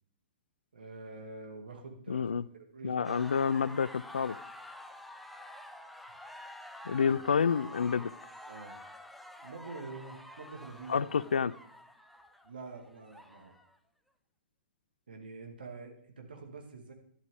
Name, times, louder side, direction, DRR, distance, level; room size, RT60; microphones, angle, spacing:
voice 1, 0.7-3.6 6.8-7.2 8.4-8.8 9.4-11.3 12.4-13.5 15.1-16.9, right 3 dB, 65° right, 3 dB, 2.3 m, -47 dB
voice 2, 2.1-2.4 2.8-4.4 6.9-8.1 10.9-11.5, left 6 dB, 65° left, 21 dB, 0.4 m, -29 dB
sound 1, 3.0-13.8, left 1 dB, ahead, 0.6 m, -49 dB
11.5 x 11.5 x 3.6 m, 0.68 s
figure-of-eight pair, 115°, 6 cm